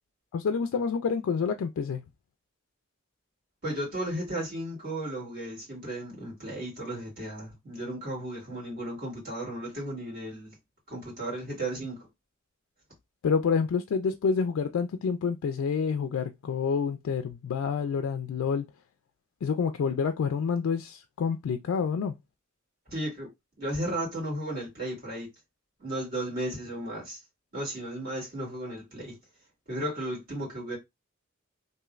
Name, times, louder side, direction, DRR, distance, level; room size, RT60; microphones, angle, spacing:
voice 1, 0.3-2.0 13.2-18.6 19.4-22.1, left 6 dB, 80° left, 0.3 m, -28 dB
voice 2, 3.6-10.5 10.9-12.0 22.9-23.3 23.6-25.3 25.8-27.2 27.5-29.2 29.7-30.8, right 1 dB, 50° right, 1.9 m, -34 dB
3.1 x 2.7 x 2.3 m
head